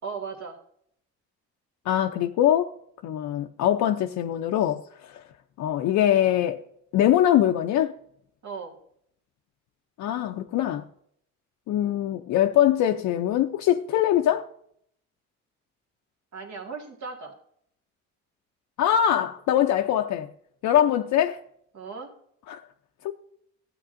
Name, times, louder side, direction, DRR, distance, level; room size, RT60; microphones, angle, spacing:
voice 1, 0.0-0.6 8.4-8.7 16.3-17.3 20.9-21.1 21.7-22.1, right 5 dB, 65° right, 1.8 m, -37 dB
voice 2, 1.9-2.7 3.0-5.2 5.6-6.6 6.9-8.0 10.0-10.8 11.7-14.5 18.8-20.3 20.6-21.4 22.5-22.6 23.0-23.1, left 11 dB, 70° left, 0.5 m, -23 dB
12.5 x 8.2 x 2.5 m
cardioid pair, 90°, 30 cm